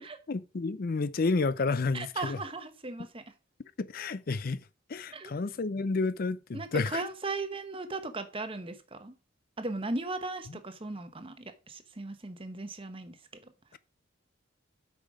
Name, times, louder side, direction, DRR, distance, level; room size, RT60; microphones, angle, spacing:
voice 1, 0.3-2.4 3.8-4.6 4.9-7.0 13.7-13.8, left 3 dB, 45° left, 0.5 m, -30 dB
voice 2, 1.9-3.2 5.1-5.3 6.5-9.1 9.6-13.5, right 3 dB, 25° right, 1.0 m, -37 dB
8.4 x 5.7 x 4.9 m
head